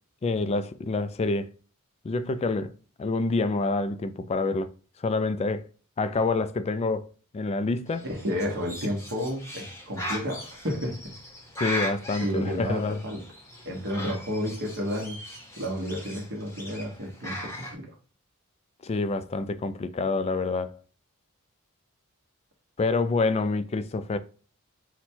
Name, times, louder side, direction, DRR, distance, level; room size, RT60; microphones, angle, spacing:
voice 1, 0.2-1.5 2.0-2.7 3.0-4.7 5.0-5.7 6.0-7.1 7.3-8.1 11.6-13.0 18.8-20.8 22.8-24.2, left 3 dB, 30° left, 0.3 m, -27 dB
Bird, 7.9-17.8, left 1 dB, 15° left, 0.8 m, -39 dB
voice 2, 8.0-11.1 12.2-13.2 13.6-15.2 15.6-17.9, equal, 55° right, 1.0 m, -31 dB
4.1 x 2.2 x 4.4 m
head